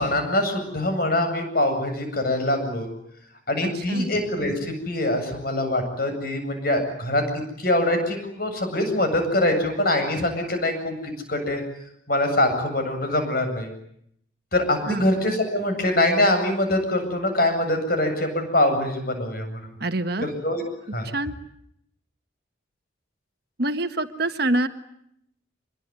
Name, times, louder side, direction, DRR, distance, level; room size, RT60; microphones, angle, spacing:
voice 1, 0.0-2.9 3.5-7.2 7.6-11.6 12.1-13.7 14.5-19.7 20.2-20.6 20.9-21.1, left 1 dB, 50° left, 6 dB, 8.0 m, -24 dB
voice 2, 3.6-4.1 14.9-15.0 19.8-20.3 21.1-21.3 23.6-24.7, right 2 dB, 50° right, 8 dB, 1.6 m, -25 dB
26.5 x 22.5 x 9.7 m, 0.73 s
head